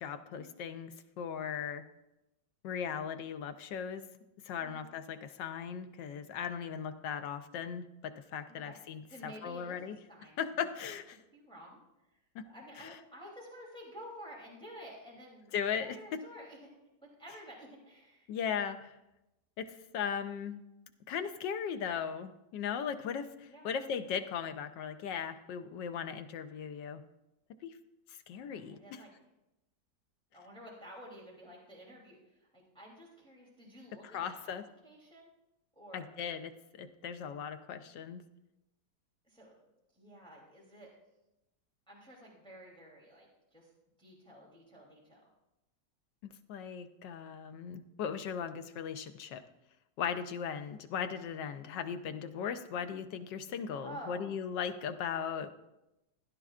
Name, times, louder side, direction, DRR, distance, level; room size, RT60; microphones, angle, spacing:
voice 1, 0.0-1.8 2.6-4.0 4.4-10.0 10.4-11.2 12.3-12.5 12.8-12.9 15.5-16.2 18.3-18.9 19.6-20.6 21.1-27.0 27.6-27.8 28.3-29.0 34.0-34.6 35.9-38.2 46.2-49.4 50.0-55.5, left 7 dB, 90° left, 9 dB, 1.4 m, -38 dB
voice 2, 4.6-4.9 8.5-8.8 9.1-10.6 11.3-11.8 12.5-16.7 17.0-18.3 23.4-23.7 28.4-29.1 30.3-34.5 34.8-35.3 35.7-36.1 39.2-39.6 39.9-40.9 41.9-43.7 44.0-45.2 53.8-54.3, equal, 5° left, -3 dB, 2.9 m, -51 dB
16.0 x 11.5 x 2.4 m, 0.92 s
omnidirectional pair, 1.9 m